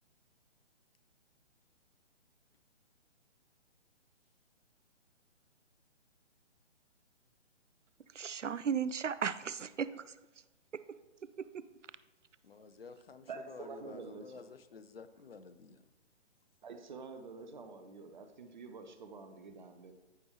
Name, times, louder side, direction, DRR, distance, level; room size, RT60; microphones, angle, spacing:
voice 1, 8.1-10.0 10.7-10.8 11.4-11.6, right 7 dB, 80° right, 0.5 m, -35 dB
voice 2, 12.4-15.8, left 5 dB, 55° left, 0.7 m, -51 dB
voice 3, 13.3-14.5 16.6-19.9, right 4 dB, 40° right, 0.9 m, -48 dB
14.0 x 5.2 x 3.1 m
figure-of-eight pair, 135°, 36 cm